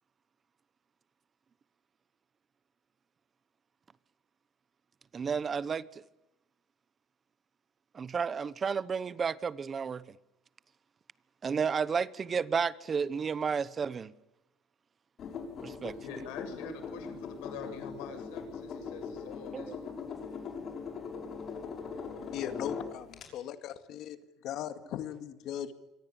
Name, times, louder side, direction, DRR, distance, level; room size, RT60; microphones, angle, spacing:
voice 1, 5.1-6.0 7.9-10.0 11.4-14.1 15.6-16.0 19.5-19.8, right 6 dB, 25° right, 0.9 m, -32 dB
sound 1, 15.2-23.3, left 5 dB, 40° left, 6.1 m, -41 dB
voice 2, 16.0-19.9, left 6 dB, 80° left, 7.5 m, -45 dB
voice 3, 22.3-24.2 24.4-25.7, left 10 dB, 55° left, 2.1 m, -38 dB
26.0 x 24.0 x 8.9 m
cardioid pair, 140°, 0 cm